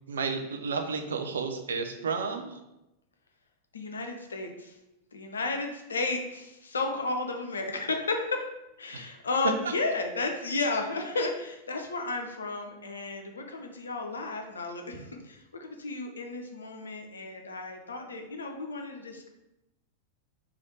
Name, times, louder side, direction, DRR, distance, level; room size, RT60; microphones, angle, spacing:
voice 1, 0.1-2.6 8.9-9.1, right 5 dB, 65° right, 5 dB, 0.4 m, -32 dB
voice 2, 3.7-4.8 5.1-8.5 8.8-19.3, left 3 dB, 70° left, 4 dB, 0.5 m, -33 dB
3.3 x 2.4 x 3.9 m, 0.92 s
figure-of-eight pair, 90°, 0 cm